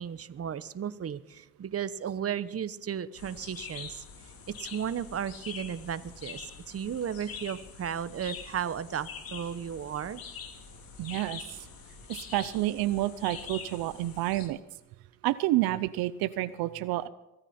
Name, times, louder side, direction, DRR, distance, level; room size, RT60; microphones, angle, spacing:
voice 1, 0.0-4.0 4.5-10.2, right 8 dB, 40° right, 15 dB, 1.0 m, -34 dB
sound 1, 3.2-14.5, left 6 dB, 75° left, 2.7 m, -45 dB
voice 2, 11.0-11.4 12.1-14.6 15.2-17.1, right 16 dB, 90° right, 14 dB, 0.7 m, -29 dB
23.5 x 9.9 x 4.4 m, 0.96 s
cardioid pair, 75°, 35 cm